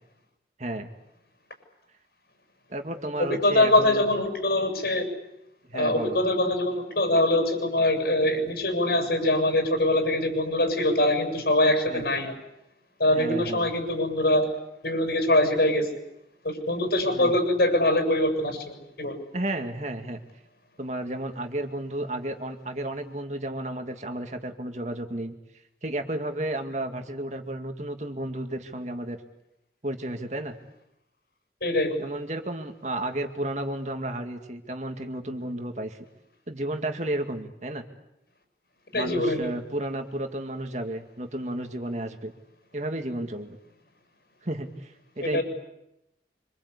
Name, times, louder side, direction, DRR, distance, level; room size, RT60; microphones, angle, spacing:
voice 1, 0.6-0.9 2.7-4.0 5.6-6.2 11.9-12.0 13.1-13.7 17.1-17.3 19.3-20.2 20.8-25.3 25.8-29.2 29.8-30.6 32.0-36.0 36.5-37.8 38.9-42.3 42.7-43.6 44.4-45.4, right 1 dB, 40° right, 5 dB, 2.2 m, -32 dB
voice 2, 3.2-5.1 5.7-12.3 13.0-14.5 14.8-15.9 16.4-19.2 31.6-32.0 38.9-39.5 45.2-45.4, left 1 dB, 60° left, 6 dB, 7.5 m, -23 dB
26.5 x 26.5 x 8.4 m, 0.86 s
head